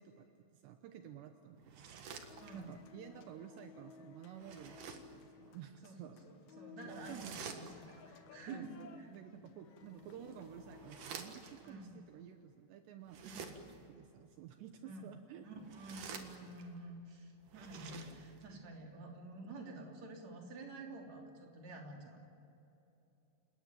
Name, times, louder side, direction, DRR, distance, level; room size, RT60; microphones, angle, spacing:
voice 1, 0.0-6.2 6.8-7.6 8.5-15.5, right 9 dB, 75° right, 6 dB, 3.2 m, -52 dB
sound 1, 1.6-2.9 4.4-5.2 6.9-8.1 9.9-11.7 13.0-13.9 15.5-16.8 17.4-18.5, right 5 dB, 55° right, 2.8 m, -50 dB
sound 2, 2.1-11.2, left 6 dB, 90° left, 1.6 m, -58 dB
voice 2, 2.4-2.8 5.8-8.7 9.0-9.1 11.6-11.9 13.2-13.5 14.8-15.1 15.4-22.2, right 2 dB, 40° right, 1 dB, 4.2 m, -50 dB
29.5 x 19.0 x 9.1 m, 3.0 s
omnidirectional pair, 5.1 m